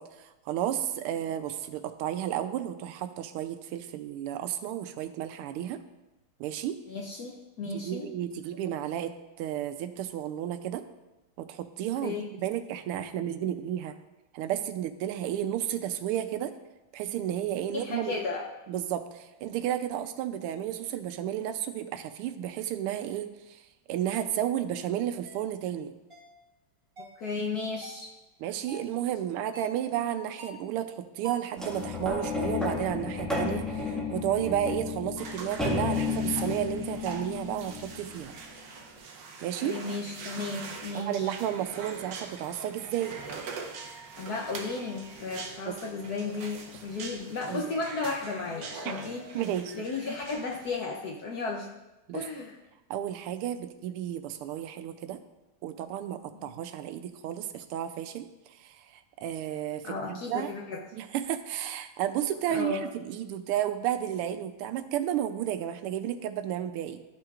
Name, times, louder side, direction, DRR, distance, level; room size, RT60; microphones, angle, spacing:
voice 1, 0.0-5.8 6.4-6.8 7.8-10.8 11.4-14.0 14.3-16.5 16.9-18.2 18.7-23.6 23.9-25.9 28.4-38.4 39.4-39.8 40.9-43.2 45.7-45.8 47.5-47.7 49.3-49.8 52.1-52.2 52.9-55.2 55.6-60.5 60.9-67.0, right 11 dB, 90° right, 9 dB, 1.5 m, -32 dB
voice 2, 6.9-8.1 12.0-12.3 17.7-18.4 27.2-28.1 39.6-41.3 44.2-49.3 49.7-51.7 52.1-52.6 56.3-56.5 59.8-60.8 62.5-62.8, left 3 dB, 65° left, 0 dB, 1.0 m, -34 dB
sound 1, 25.2-25.4 26.1-26.4 27.0-27.2 27.8-28.1 28.7-29.0 29.5-29.8 30.4-30.7 31.2-31.6, right 2 dB, 35° right, 1.1 m, -45 dB
sound 2, 31.6-38.3 39.0-39.1, left 4 dB, ahead, 1.2 m, -32 dB
sound 3, 35.2-50.8, right 4 dB, 65° right, 0.9 m, -43 dB
12.5 x 5.9 x 2.4 m, 1.0 s
omnidirectional pair, 2.4 m